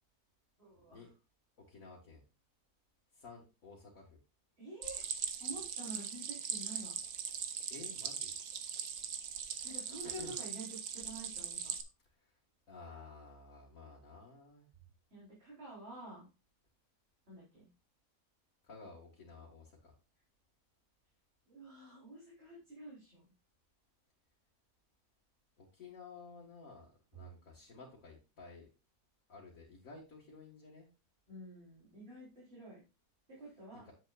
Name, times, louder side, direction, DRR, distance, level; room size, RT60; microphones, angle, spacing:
voice 1, 0.6-1.0 4.6-5.1 5.4-7.0 9.6-10.7 10.9-11.7 15.1-16.3 17.3-17.7 21.5-23.3 31.3-32.8 33.3-33.8, right 1 dB, 40° right, -7 dB, 4.2 m, -49 dB
voice 2, 1.7-2.2 3.1-4.2 7.7-8.4 10.2-10.3 12.2-12.3 12.7-14.7 18.6-19.9 25.6-28.7 29.3-30.9 33.8-33.9, left 4 dB, 65° left, -3 dB, 2.2 m, -53 dB
Stream, 4.8-11.8, right 7 dB, 85° right, 1.4 m, -40 dB
9.3 x 7.6 x 2.4 m, 0.29 s
omnidirectional pair, 1.6 m